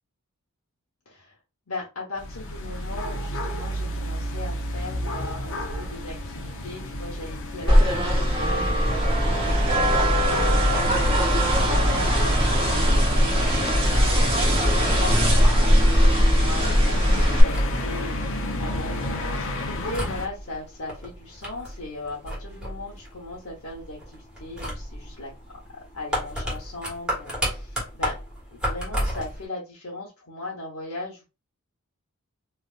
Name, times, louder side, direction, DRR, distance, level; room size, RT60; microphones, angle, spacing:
voice 1, 1.1-1.4 1.7-13.8 14.7-25.3 25.9-28.1 28.5-31.2, left 2 dB, 90° left, -4 dB, 1.0 m, -38 dB
sound 1, 2.2-20.3, equal, 65° left, 0.7 m, -30 dB
sound 2, 7.7-17.4, equal, 25° right, 0.9 m, -20 dB
sound 3, 17.3-29.4, equal, 5° right, 1.1 m, -34 dB
3.2 x 2.5 x 2.3 m, 0.28 s
head